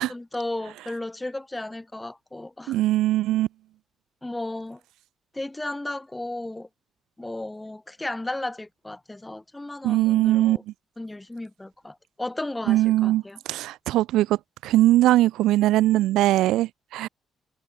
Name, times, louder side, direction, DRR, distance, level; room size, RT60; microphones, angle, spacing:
voice 1, 0.0-2.8 4.2-4.8 5.3-6.7 7.2-10.6 11.0-13.4, left 2 dB, 10° left, 7.5 m, -34 dB
voice 2, 2.7-3.5 9.8-10.6 12.7-13.2 13.5-14.4 14.6-17.1, right 15 dB, 90° right, 2.7 m, -20 dB
cardioid pair, 90°, 0 cm